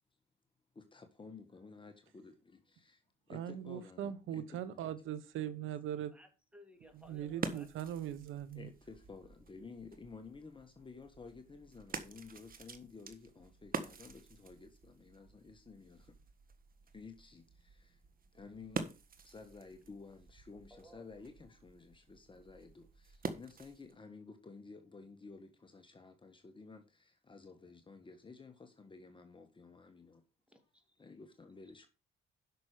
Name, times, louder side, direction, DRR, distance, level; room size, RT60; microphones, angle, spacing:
voice 1, 0.7-5.0 8.5-16.2 16.9-18.0 18.3-18.9 19.2-30.2 31.0-31.9, left 4 dB, 25° left, 1.4 m, -53 dB
voice 2, 3.3-6.1 7.1-8.7, right 10 dB, 85° right, 1.1 m, -40 dB
voice 3, 6.1-7.7 20.7-21.1 30.5-31.1, left 1 dB, 5° right, 2.9 m, -59 dB
sound 1, 6.8-24.0, right 5 dB, 45° right, 1.5 m, -47 dB
10.5 x 6.2 x 5.0 m
cardioid pair, 90°, 20 cm